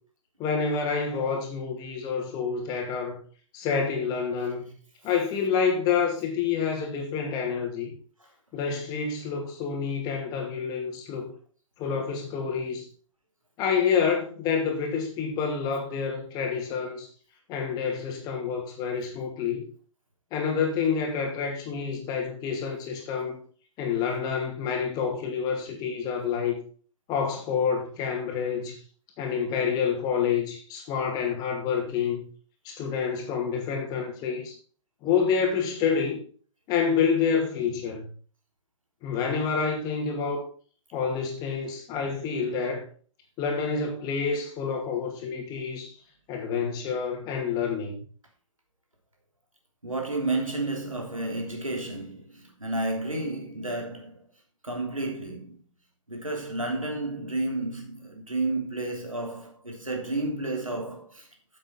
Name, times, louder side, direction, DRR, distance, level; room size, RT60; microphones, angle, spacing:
voice 1, 0.4-3.2 3.5-4.7 5.0-7.9 8.5-11.3 11.8-12.9 13.6-17.1 17.5-19.6 20.3-23.4 23.8-26.6 27.1-28.8 29.2-32.3 32.6-34.6 35.0-36.2 36.7-38.1 39.0-40.4 40.9-42.8 43.4-45.9 46.3-48.0, left 6 dB, 25° left, 2.4 m, -28 dB
voice 2, 49.8-54.2 54.6-55.6 56.1-61.3, right 2 dB, 85° right, 3.3 m, -31 dB
9.6 x 7.7 x 4.3 m
figure-of-eight pair, 120°, 17 cm